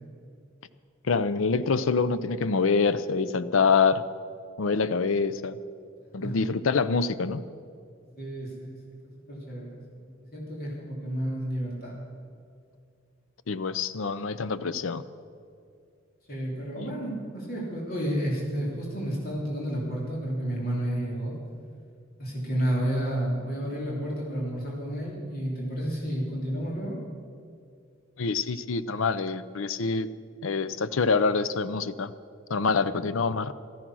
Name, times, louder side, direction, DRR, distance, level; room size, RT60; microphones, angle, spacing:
voice 1, 1.1-4.0 4.6-5.6 6.1-7.4 13.5-15.0 16.8-16.9 28.2-30.1 30.4-32.1 32.5-33.5, left 4 dB, 75° left, 15 dB, 0.6 m, -25 dB
voice 2, 8.1-8.8 9.2-11.9 16.3-21.3 22.2-27.0, equal, 45° left, -4 dB, 3.2 m, -31 dB
14.0 x 13.5 x 6.2 m, 2.3 s
head